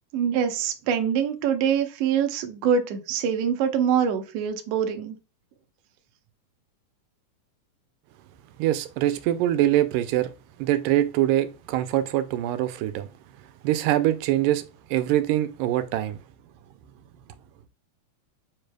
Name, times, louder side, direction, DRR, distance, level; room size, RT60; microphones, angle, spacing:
voice 1, 0.1-5.1, right 7 dB, 70° right, 1.5 m, -24 dB
voice 2, 8.6-10.3 10.6-13.1 13.6-14.6 14.9-16.2, right 13 dB, 90° right, 2.2 m, -23 dB
7.2 x 3.3 x 2.2 m
omnidirectional pair, 3.8 m